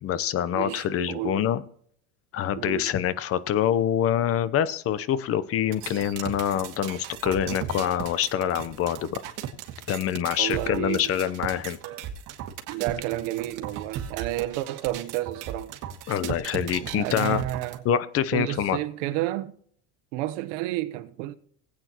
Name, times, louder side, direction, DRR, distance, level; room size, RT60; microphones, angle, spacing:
voice 1, 0.0-1.6 2.3-9.2 9.9-11.8 16.1-17.4 17.8-18.8, left 10 dB, 40° left, 0.9 m, -25 dB
voice 2, 0.5-1.5 2.6-2.9 10.4-11.1 12.7-15.7 16.9-17.8 18.3-19.5 20.1-21.4, right 15 dB, 80° right, 1.1 m, -31 dB
sound 1, 5.7-17.8, right 10 dB, 55° right, 2.1 m, -37 dB
20.0 x 8.9 x 3.0 m
cardioid pair, 135°, 36 cm